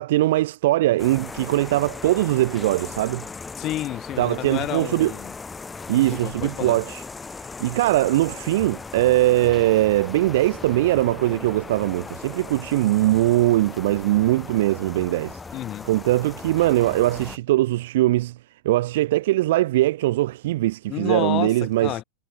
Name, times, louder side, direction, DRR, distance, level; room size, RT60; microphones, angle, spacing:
voice 1, 0.0-3.2 4.2-5.1 5.9-7.0 7.6-15.4 15.9-18.4 18.6-22.0, right 16 dB, 55° right, 0.5 m, -21 dB
sound 1, 1.0-17.4, left 4 dB, 15° left, 4.9 m, -38 dB
voice 2, 3.6-5.3 6.1-6.8 15.5-15.9 20.9-22.0, left 14 dB, 35° left, 7.0 m, -30 dB
figure-of-eight pair, 90°, 0 cm